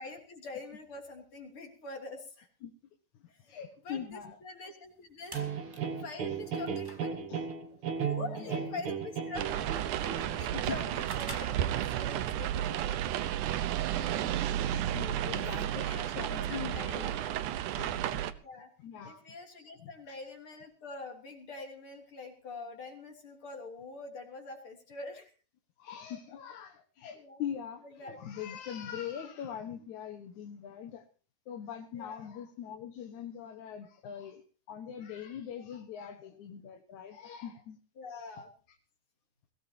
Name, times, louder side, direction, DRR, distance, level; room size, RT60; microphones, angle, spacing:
voice 1, 0.0-2.5 3.3-5.4 6.0-7.2 7.9-13.0 15.3-15.5 15.8-17.4 18.4-18.7 19.0-25.3 27.1-27.4 27.8-28.2 28.5-28.6 31.9-32.3 38.0-38.5, left 3 dB, 40° left, 3 dB, 3.8 m, -45 dB
voice 2, 3.5-4.4 5.4-5.6 7.3-7.4 8.2-8.9 9.4-9.5 10.5-11.1 14.0-14.3 14.9-15.8 16.2-17.2 17.8-18.2 18.8-19.2 19.8-20.2 25.8-31.0 31.5-37.8 38.3-38.4, left 8 dB, 70° left, 4 dB, 2.7 m, -42 dB
sound 1, 4.8-12.3, right 1 dB, 10° right, 1.3 m, -52 dB
sound 2, 5.3-10.4, right 7 dB, 50° right, 2.2 m, -35 dB
sound 3, 9.4-18.3, right 11 dB, 75° right, 2.3 m, -32 dB
21.5 x 17.0 x 2.9 m, 0.37 s
omnidirectional pair, 3.7 m